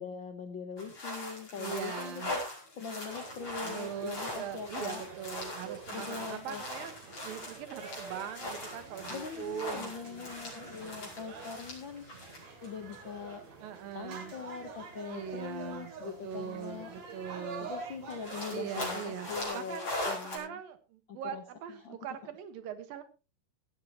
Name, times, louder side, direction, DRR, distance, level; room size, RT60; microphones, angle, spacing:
voice 1, 0.0-2.4 2.8-5.0 5.9-6.6 9.1-13.4 13.9-16.9 17.6-20.6 21.1-21.4 21.8-22.0, left 6 dB, 70° left, 7 dB, 1.1 m, -42 dB
sound 1, 0.8-12.7 12.9-13.0 14.1-14.2 16.4-16.5 16.8-16.9 17.2-17.3 18.1-20.4, left 1 dB, 45° left, 6.2 m, -40 dB
voice 2, 1.6-2.3 3.6-10.3 10.8-11.2 13.6-14.3 15.0-17.7 18.5-19.3 19.5-20.0 20.3-23.0, right 8 dB, 85° right, 10 dB, 3.2 m, -41 dB
sound 2, 3.1-19.5, right 4 dB, 50° right, 4.0 m, -47 dB
17.0 x 13.0 x 3.0 m, 0.31 s
omnidirectional pair, 4.0 m